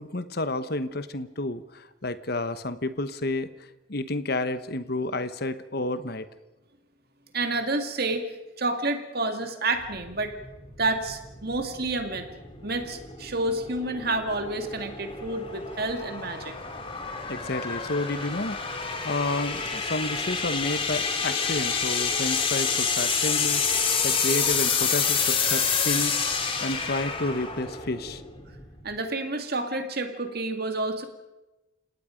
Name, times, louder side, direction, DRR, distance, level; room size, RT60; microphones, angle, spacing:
voice 1, 0.0-3.5 3.9-6.3 17.3-23.6 24.0-26.2 26.6-28.2, left 2 dB, 50° left, 12 dB, 1.1 m, -30 dB
voice 2, 7.3-8.3 8.6-10.3 10.8-12.3 12.6-16.5 28.8-31.0, right 2 dB, 50° right, 6 dB, 2.2 m, -29 dB
sound 1, 9.8-28.9, left 5 dB, 25° left, 2.4 m, -28 dB
29.5 x 18.0 x 5.2 m, 1.0 s
head